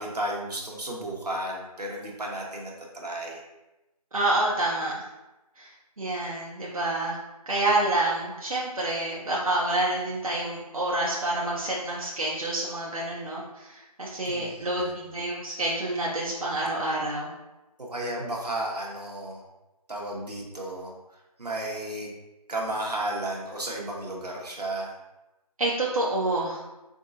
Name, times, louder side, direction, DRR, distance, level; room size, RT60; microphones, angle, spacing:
voice 1, 0.0-3.4 14.3-14.9 17.8-19.4 19.9-20.9 21.4-22.1 22.5-24.9, right 1 dB, 85° right, -2 dB, 1.3 m, -33 dB
voice 2, 4.1-5.1 5.6-5.7 6.0-7.2 7.5-17.3 25.6-26.6, right 2 dB, 65° right, -5 dB, 0.9 m, -28 dB
4.6 x 3.7 x 2.7 m, 1.0 s
figure-of-eight pair, 180°, 20 cm